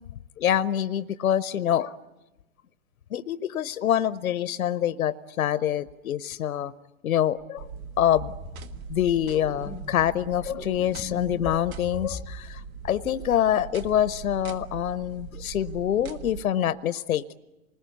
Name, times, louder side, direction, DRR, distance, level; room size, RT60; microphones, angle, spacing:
voice 1, 0.4-1.9 3.1-6.7 7.0-7.7 8.0-8.3 8.9-17.3, left 10 dB, 80° left, 0.8 m, -25 dB
sound 1, 7.4-7.5 8.1-8.9 9.1-10.2 10.5-12.5 12.8-13.5 13.8-14.1, left 1 dB, ahead, 0.8 m, -42 dB
sound 2, 7.6-16.4, right 6 dB, 75° right, 1.7 m, -41 dB
28.0 x 20.5 x 8.3 m
hypercardioid pair, 135°, 42 cm